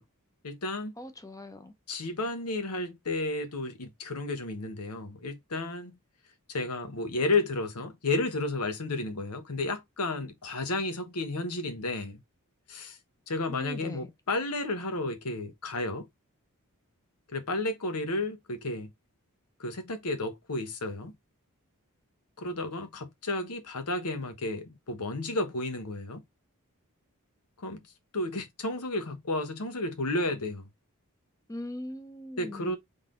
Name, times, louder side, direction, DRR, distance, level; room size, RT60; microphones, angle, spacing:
voice 1, 0.4-0.9 1.9-6.0 6.5-12.2 12.7-13.0 13.3-16.1 17.3-18.9 19.6-21.1 22.4-26.2 27.6-27.8 28.1-30.6 32.4-32.8, left 2 dB, 85° left, 1.1 m, -32 dB
voice 2, 1.0-1.7 13.5-14.1 31.5-32.8, left 1 dB, 15° left, 0.8 m, -40 dB
4.0 x 3.5 x 3.8 m
head